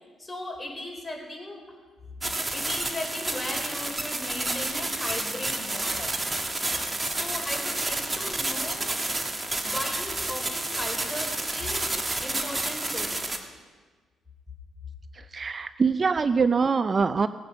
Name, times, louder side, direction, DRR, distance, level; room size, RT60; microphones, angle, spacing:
voice 1, 0.2-1.7 2.2-6.1 7.1-9.0 9.6-13.2, left 1 dB, 15° left, 0 dB, 4.1 m, -37 dB
sound 1, 2.2-13.4, right 2 dB, 20° right, 1.6 m, -30 dB
voice 2, 15.1-17.3, right 5 dB, 35° right, 13 dB, 0.4 m, -24 dB
18.5 x 8.3 x 6.2 m, 1.4 s
cardioid pair, 90°, 0 cm